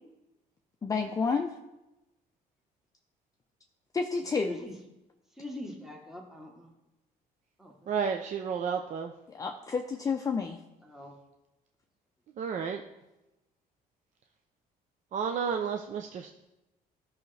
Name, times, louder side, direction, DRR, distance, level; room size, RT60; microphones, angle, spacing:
voice 1, 0.8-1.5 3.9-4.6 9.3-10.6, left 5 dB, 20° left, 4 dB, 0.5 m, -30 dB
voice 2, 5.3-6.7 7.6-7.9 10.8-11.1, left 1 dB, ahead, -1 dB, 1.2 m, -42 dB
voice 3, 7.9-9.1 12.4-12.8 15.1-16.3, right 6 dB, 50° right, 4 dB, 0.6 m, -31 dB
13.0 x 5.6 x 3.3 m, 0.97 s
cardioid pair, 125°, 16 cm